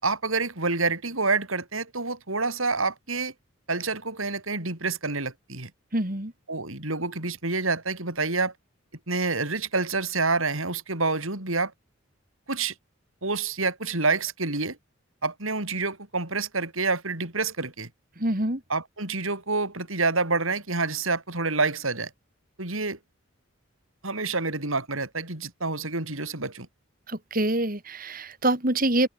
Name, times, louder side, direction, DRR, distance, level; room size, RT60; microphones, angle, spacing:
voice 1, 0.0-3.3 3.7-5.7 6.5-8.5 9.1-11.7 12.5-12.7 13.2-14.8 15.2-17.9 18.7-22.1 22.6-23.0 24.0-26.7, right 3 dB, 75° right, 5.0 m, -28 dB
voice 2, 5.9-6.3 18.2-18.6 27.1-29.1, right 1 dB, 40° right, 3.0 m, -25 dB
head